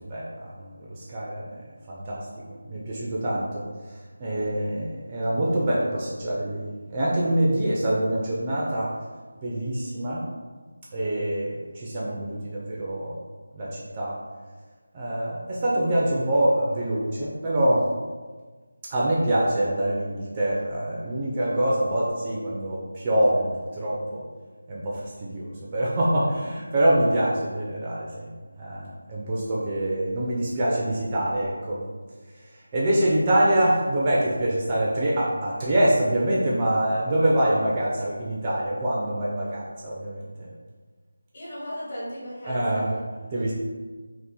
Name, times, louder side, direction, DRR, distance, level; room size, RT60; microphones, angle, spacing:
voice 1, 0.0-1.6 1.9-3.6 4.2-8.9 9.4-10.2 10.9-13.2 13.5-14.2 14.9-17.9 18.9-24.2 24.7-28.3 28.6-31.8 32.7-40.5 42.5-42.9 43.3-43.5, right 1 dB, 20° right, -5 dB, 0.4 m, -25 dB
voice 2, 41.3-43.0, equal, 40° left, -8 dB, 1.2 m, -36 dB
2.7 x 2.5 x 3.6 m, 1.4 s
figure-of-eight pair, 170°, 0 cm